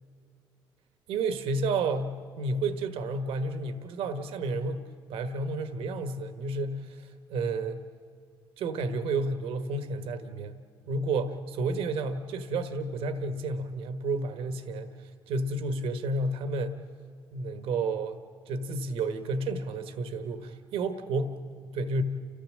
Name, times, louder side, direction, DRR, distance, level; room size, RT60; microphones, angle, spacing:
voice 1, 1.1-7.8 8.6-10.6 10.9-16.8 17.3-21.4 21.7-22.0, right 3 dB, 80° right, 8 dB, 1.4 m, -31 dB
30.0 x 14.0 x 7.6 m, 2.1 s
cardioid pair, 80°, 9 cm